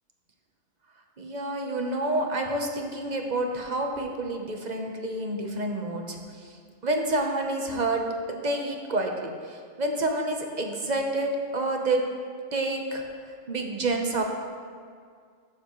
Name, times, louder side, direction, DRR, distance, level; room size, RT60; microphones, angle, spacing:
voice 1, 1.2-6.6 6.8-12.0 12.5-13.0 13.5-14.2, right 2 dB, 40° right, 2 dB, 0.9 m, -28 dB
14.0 x 7.2 x 3.1 m, 2.1 s
omnidirectional pair, 1.4 m